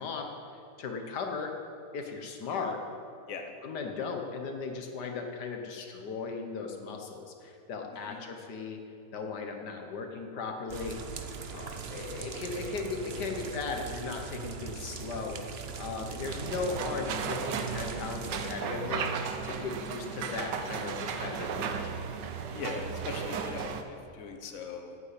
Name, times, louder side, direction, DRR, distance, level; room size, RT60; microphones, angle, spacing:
voice 1, 0.0-1.5 1.9-2.8 3.6-8.8 9.1-11.2 11.5-15.4 15.8-22.0, left 4 dB, 75° left, 3 dB, 1.6 m, -37 dB
sound 1, 10.7-18.6, right 5 dB, 50° right, 0.8 m, -41 dB
sound 2, 16.2-23.8, right 6 dB, 90° right, 1.4 m, -35 dB
voice 2, 22.5-23.7 24.1-24.9, left 5 dB, 55° left, 4 dB, 1.3 m, -39 dB
10.0 x 8.7 x 8.2 m, 2.5 s
omnidirectional pair, 1.8 m